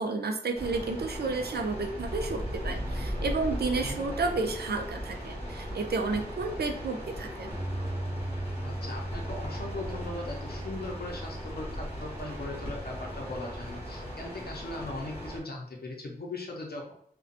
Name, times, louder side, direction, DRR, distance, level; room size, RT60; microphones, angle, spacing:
voice 1, 0.0-7.5, right 3 dB, 80° right, 4 dB, 0.4 m, -31 dB
sound 1, 0.5-15.4, equal, 40° left, 1.1 m, -38 dB
Bass guitar, 7.5-13.8, right 1 dB, 5° right, 0.4 m, -39 dB
voice 2, 8.6-16.9, left 2 dB, 75° left, -1 dB, 0.6 m, -39 dB
2.4 x 2.2 x 2.5 m, 0.69 s
wide cardioid pair, 55°, 16 cm